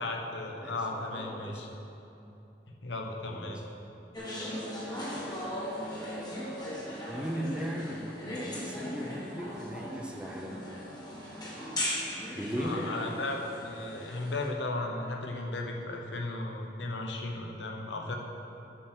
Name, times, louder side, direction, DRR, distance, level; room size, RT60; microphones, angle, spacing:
voice 1, 0.0-1.7 2.8-3.6 12.6-18.2, left 2 dB, 80° left, 1 dB, 1.0 m, -35 dB
voice 2, 0.6-1.6 3.3-3.6 7.1-10.7 12.3-12.8, equal, 5° right, 0 dB, 0.7 m, -38 dB
sound 1, 4.1-14.5, equal, 25° left, 1.6 m, -38 dB
8.0 x 6.1 x 6.2 m, 2.9 s
head